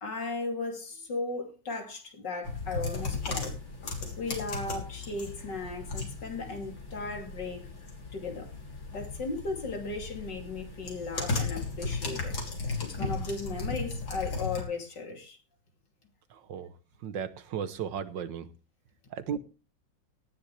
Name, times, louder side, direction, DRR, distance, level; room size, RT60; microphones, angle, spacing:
voice 1, 0.0-3.5 4.2-7.6 8.1-8.5 8.9-12.3 12.8-15.4, left 3 dB, 65° left, 3.5 m, -36 dB
sound 1, 2.4-14.6, left 3 dB, 85° left, 4.0 m, -36 dB
voice 2, 16.3-16.7 17.0-18.5 19.1-19.4, right 8 dB, 75° right, 1.6 m, -35 dB
18.0 x 10.5 x 3.3 m
omnidirectional pair, 2.1 m